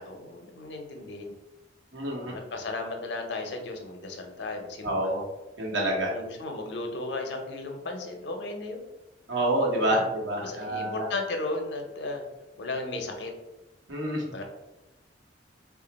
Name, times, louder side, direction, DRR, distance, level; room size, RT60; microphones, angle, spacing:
voice 1, 0.0-1.4 2.2-5.1 6.1-8.8 9.8-10.1 10.4-12.2 12.6-13.3 14.3-14.4, left 2 dB, 65° left, 3 dB, 0.6 m, -35 dB
voice 2, 1.9-2.4 4.8-5.2 5.6-6.2 9.3-11.1 13.9-14.4, right 1 dB, 80° right, -2 dB, 1.0 m, -28 dB
3.0 x 2.4 x 4.0 m, 1.0 s
head